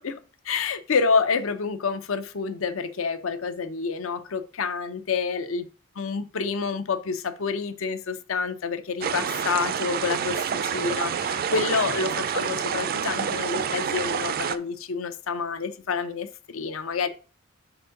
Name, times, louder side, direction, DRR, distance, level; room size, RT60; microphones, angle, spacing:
voice 1, 0.0-5.7 6.0-17.1, left 5 dB, 80° left, 0.6 m, -28 dB
sound 1, 9.0-14.6, right 7 dB, 45° right, 0.4 m, -28 dB
4.5 x 4.0 x 5.6 m
head